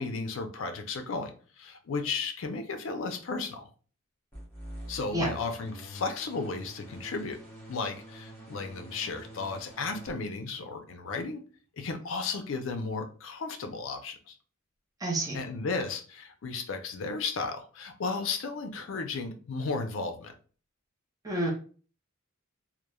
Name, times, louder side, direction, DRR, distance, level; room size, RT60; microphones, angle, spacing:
voice 1, 0.0-3.7 4.9-7.4 7.7-11.4 11.8-14.4 15.3-20.3, left 4 dB, 70° left, 7 dB, 0.4 m, -34 dB
sound 1, 4.3-10.1, right 1 dB, 10° left, 0.8 m, -46 dB
voice 2, 15.0-15.4 21.2-21.5, right 1 dB, 15° right, -2 dB, 0.5 m, -29 dB
3.0 x 2.0 x 2.2 m, 0.40 s
head